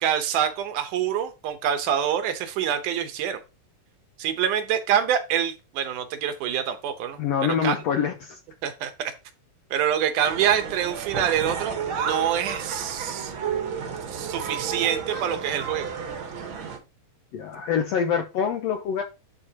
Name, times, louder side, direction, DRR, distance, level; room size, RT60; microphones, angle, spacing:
voice 1, 0.0-3.4 4.2-7.2 7.6-7.8 8.6-9.1 9.7-13.3 14.1-16.0, right 9 dB, 75° right, 2.4 m, -26 dB
voice 2, 7.2-8.4 17.3-19.0, left 7 dB, 75° left, 1.6 m, -25 dB
sound 1, 10.2-16.8, right 6 dB, 55° right, 1.5 m, -32 dB
11.0 x 4.4 x 2.8 m
omnidirectional pair, 3.8 m